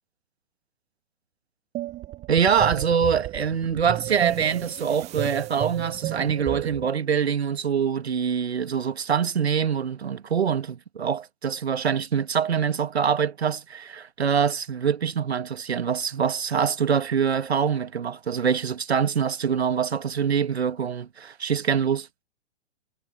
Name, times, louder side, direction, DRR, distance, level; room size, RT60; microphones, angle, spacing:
sound 1, 1.7-6.9, right 16 dB, 20° right, 1.3 m, -33 dB
voice 1, 2.3-22.1, right 7 dB, 65° right, 2.0 m, -24 dB
figure-of-eight pair, 115°, 34 cm